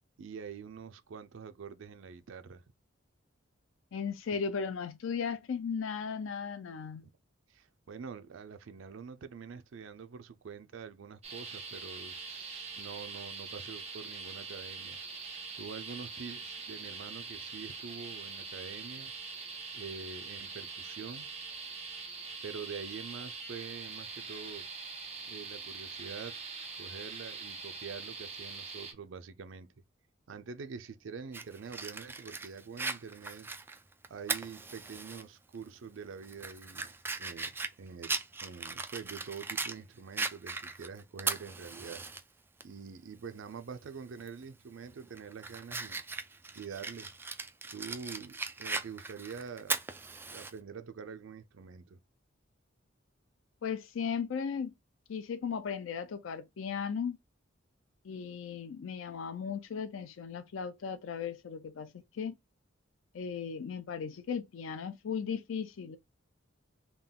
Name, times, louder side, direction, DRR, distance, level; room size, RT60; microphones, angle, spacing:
voice 1, 0.2-2.6 7.5-15.0 15.6-19.1 19.7-21.3 22.4-24.7 25.2-26.4 26.8-29.7 30.3-33.5 34.1-36.9 37.2-42.0 42.6-46.0 46.5-47.1 47.7-49.8 50.3-52.0, right 6 dB, 75° right, 0.4 m, -45 dB
voice 2, 3.9-7.0 53.6-54.7 55.1-57.2 58.0-62.3 63.1-66.0, left 6 dB, 90° left, 0.4 m, -36 dB
sound 1, 11.2-28.9, right 4 dB, 35° right, 1.0 m, -43 dB
Fire, 31.3-35.2 35.6-35.7 36.2-39.8 40.2-42.2 42.6-42.7 44.2-44.4 44.9-50.5, right 3 dB, 10° right, 0.4 m, -38 dB
3.7 x 2.3 x 3.5 m
head